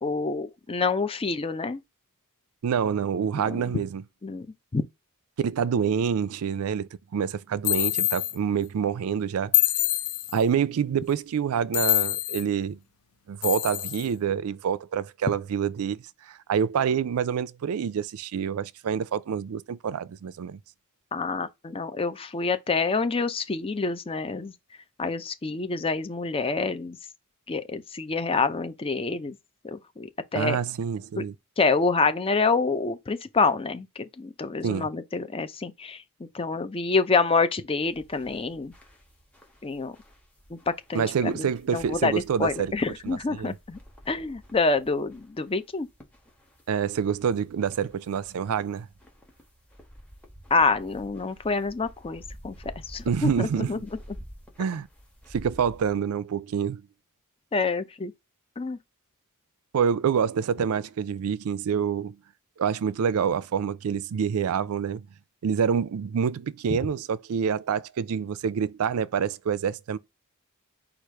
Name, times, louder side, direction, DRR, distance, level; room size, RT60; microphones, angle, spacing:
voice 1, 0.0-1.8 3.4-3.6 4.2-4.5 4.7-4.8 21.1-24.5 25.0-27.0 27.5-29.4 29.6-30.6 31.6-38.7 39.6-40.0 40.5-43.8 44.1-45.9 50.5-52.6 52.9-53.8 57.5-58.1 58.6-58.8, left 4 dB, 25° left, 0.5 m, -27 dB
voice 2, 2.6-4.0 5.4-9.5 10.3-12.8 13.3-20.6 30.3-31.3 34.6-34.9 40.9-42.7 43.0-43.5 46.7-48.9 53.1-53.8 54.6-54.9 55.3-56.8 59.7-62.2 62.6-65.1 65.4-70.0, right 7 dB, 75° right, 0.4 m, -27 dB
sound 1, 7.6-8.4 9.5-10.4 11.7-12.4 13.4-14.1, left 14 dB, 70° left, 0.6 m, -25 dB
sound 2, 37.9-56.0, equal, 5° left, 1.2 m, -50 dB
4.8 x 2.4 x 4.4 m
head